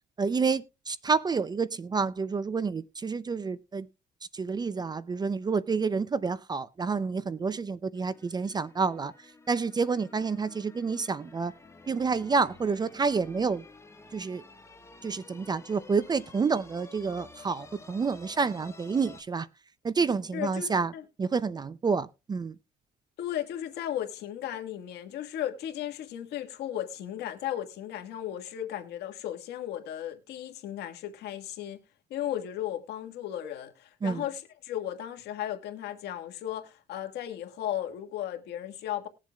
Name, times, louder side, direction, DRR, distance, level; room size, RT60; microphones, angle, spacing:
voice 1, 0.2-3.9 4.3-9.1 9.5-11.5 11.9-13.6 14.1-14.4 15.0-19.5 19.8-20.9 21.2-22.5 34.0-34.2, right 5 dB, 25° right, 0.5 m, -29 dB
sound 1, 8.0-19.2, left 3 dB, 15° left, 1.4 m, -52 dB
voice 2, 20.3-21.0 23.2-31.8 32.1-39.1, left 11 dB, 75° left, 1.7 m, -35 dB
20.0 x 7.4 x 2.3 m
cardioid pair, 110°, 17 cm